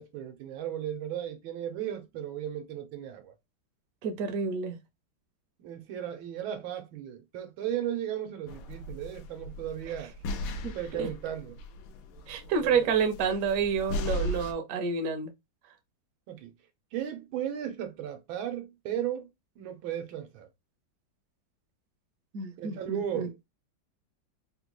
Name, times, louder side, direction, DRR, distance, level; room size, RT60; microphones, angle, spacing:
voice 1, 0.0-3.3 5.6-10.1 10.7-11.6 12.6-12.9 16.3-16.5 16.9-19.3 19.6-20.5 22.6-23.5, right 10 dB, 85° right, 1.5 m, -35 dB
voice 2, 4.0-4.8 10.6-11.1 12.3-15.3 22.3-23.3, right 5 dB, 60° right, 0.9 m, -29 dB
sound 1, 8.5-14.5, left 1 dB, 85° left, 1.4 m, -37 dB
4.0 x 2.2 x 2.9 m
omnidirectional pair, 2.1 m